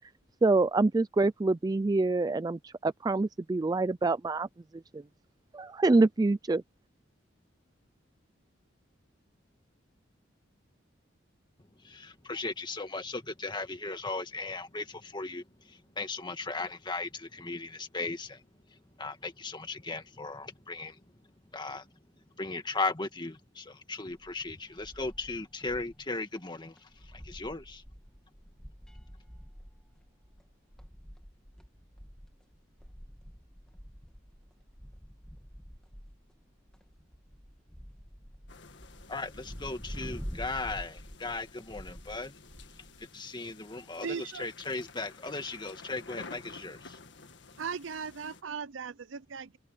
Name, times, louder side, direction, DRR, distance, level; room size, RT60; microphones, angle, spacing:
voice 1, 0.4-4.5 4.9-5.0 5.5-6.6, right 3 dB, 20° right, 0.3 m, -26 dB
voice 2, 11.8-18.4 18.7-21.0 21.5-21.9 22.4-27.8 39.1-42.4 43.0-47.0, left 3 dB, 25° left, 1.8 m, -37 dB
sound 1, 24.1-26.0 26.4-26.5 26.8-43.1, equal, 5° left, 2.5 m, -47 dB
sound 2, 38.5-48.4, left 4 dB, 65° left, 1.8 m, -52 dB
voice 3, 44.0-44.5 47.6-49.6, right 6 dB, 75° right, 0.6 m, -38 dB
head